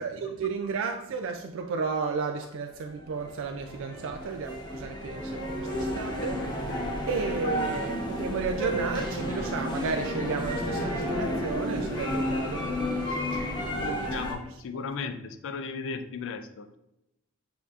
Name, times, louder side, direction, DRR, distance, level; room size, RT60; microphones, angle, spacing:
voice 1, 0.0-6.5 7.1-14.2 14.7-15.1, right 4 dB, 60° right, 0.3 m, -33 dB
sound 1, 2.9-14.3, equal, 20° left, 0.7 m, -31 dB
voice 2, 13.7-16.8, left 5 dB, 60° left, 0.4 m, -36 dB
6.6 x 2.8 x 2.4 m
head